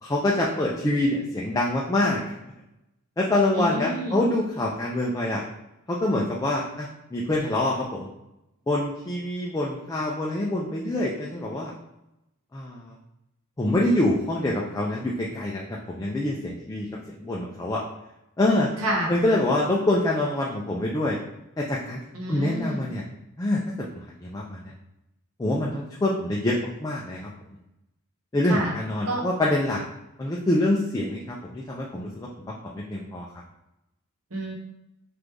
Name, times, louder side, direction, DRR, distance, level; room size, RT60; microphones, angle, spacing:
voice 1, 0.0-2.3 3.2-5.4 5.9-8.1 8.7-11.7 12.5-12.9 13.6-15.6 15.9-16.9 17.2-17.8 18.4-18.7 19.1-21.2 21.6-22.0 22.3-23.0 23.4-23.6 24.2-24.6 25.4-27.3 28.3-29.8 30.2-33.3, left 1 dB, 15° left, -3 dB, 0.4 m, -25 dB
voice 2, 3.5-4.3 18.8-19.1 22.1-22.8 28.4-28.7 29.0-29.2 34.3-34.5, right 1 dB, 85° right, -1 dB, 1.0 m, -29 dB
3.2 x 2.5 x 3.4 m, 0.90 s
head